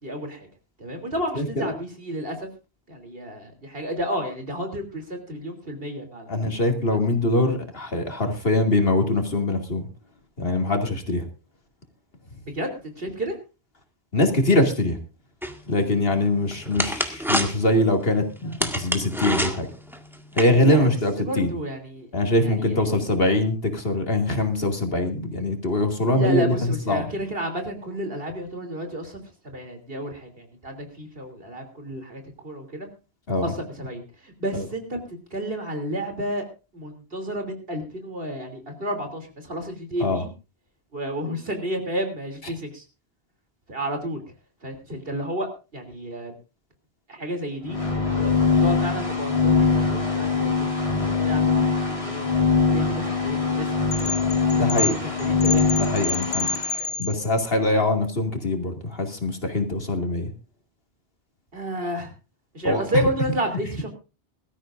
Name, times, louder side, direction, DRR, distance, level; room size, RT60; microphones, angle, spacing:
voice 1, 0.0-0.5 0.8-2.5 2.9-6.3 12.5-13.3 20.6-20.9 21.2-22.1 22.4-22.9 26.2-32.9 33.4-36.5 36.7-40.3 40.9-42.8 43.7-44.2 44.6-46.3 47.1-52.3 52.7-54.1 54.7-55.7 56.8-57.6 61.5-62.1 62.5-63.9, equal, 65° right, 5 dB, 3.4 m, -31 dB
voice 2, 1.3-1.7 6.3-9.9 10.4-11.2 14.1-15.0 15.7-19.7 20.3-21.5 22.1-26.5 26.9-27.0 33.3-33.5 34.5-34.6 40.0-40.2 54.6-54.9 55.8-56.5 57.0-60.3 62.6-62.8, left 2 dB, 65° left, 4 dB, 2.7 m, -23 dB
sound 1, 15.4-20.5, equal, ahead, 1.7 m, -29 dB
sound 2, 47.6-56.7, left 4 dB, 30° left, 3.9 m, -22 dB
sound 3, 53.9-57.5, left 3 dB, 85° left, 1.3 m, -29 dB
22.0 x 13.5 x 2.6 m, 0.30 s
omnidirectional pair, 1.0 m